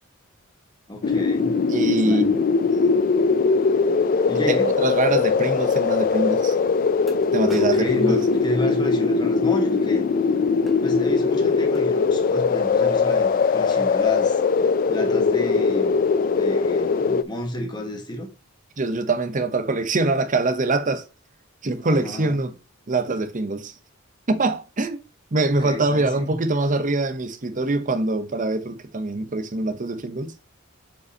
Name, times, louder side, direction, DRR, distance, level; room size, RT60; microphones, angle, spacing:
voice 1, 0.9-1.5 1.8-2.2 4.3-4.7 7.5-10.0 10.8-14.4 14.9-16.0 16.4-18.3 21.8-22.4 25.6-26.3, left 1 dB, 20° left, 1.4 m, -31 dB
sound 1, 1.0-17.2, left 5 dB, 40° left, 0.3 m, -21 dB
voice 2, 1.7-2.4 2.7-2.9 4.3-6.6 7.3-8.2 18.8-21.0 21.6-22.6 22.9-23.7 24.3-25.0 25.3-30.3, right 2 dB, 40° right, 0.7 m, -24 dB
sound 2, 4.7-4.8 5.7-5.8 6.5-6.6 7.1-9.0 10.7-10.9 11.8-12.0 12.7-12.9 13.3-13.4 13.7-14.0 14.6-14.8, equal, ahead, 1.1 m, -44 dB
6.9 x 5.2 x 2.8 m
head